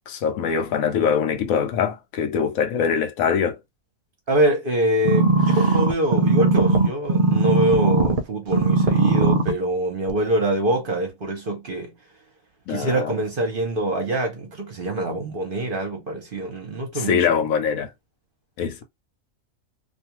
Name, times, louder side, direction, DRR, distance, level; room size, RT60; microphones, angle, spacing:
voice 1, 0.1-3.6 12.7-13.1 16.9-17.9 18.6-18.8, left 7 dB, 75° left, 1.0 m, -23 dB
voice 2, 4.3-11.9 12.7-17.2, right 1 dB, 45° right, 0.8 m, -24 dB
sound 1, 5.0-8.2 8.5-9.5 10.1-10.2, right 3 dB, 85° right, 0.4 m, -19 dB
2.5 x 2.3 x 2.8 m
omnidirectional pair, 1.5 m